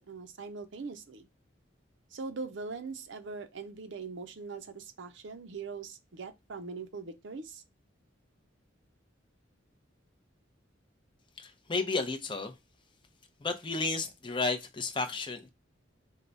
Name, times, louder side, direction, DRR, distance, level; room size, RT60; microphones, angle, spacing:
voice 1, 0.1-1.3 2.1-7.6, right 4 dB, 65° right, 0.6 m, -41 dB
voice 2, 11.4-12.5 13.4-15.5, left 3 dB, 25° left, 0.6 m, -32 dB
4.6 x 2.2 x 3.9 m
head